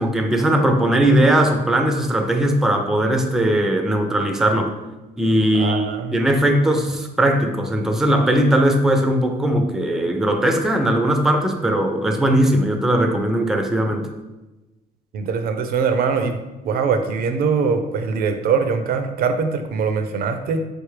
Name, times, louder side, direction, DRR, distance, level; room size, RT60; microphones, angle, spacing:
voice 1, 0.0-4.7 5.2-14.1, right 1 dB, ahead, 4 dB, 0.4 m, -19 dB
voice 2, 5.5-6.2 15.1-16.4 16.6-20.7, right 5 dB, 60° right, 7 dB, 0.5 m, -22 dB
4.2 x 3.4 x 3.2 m, 1.1 s
cardioid pair, 110°, 17 cm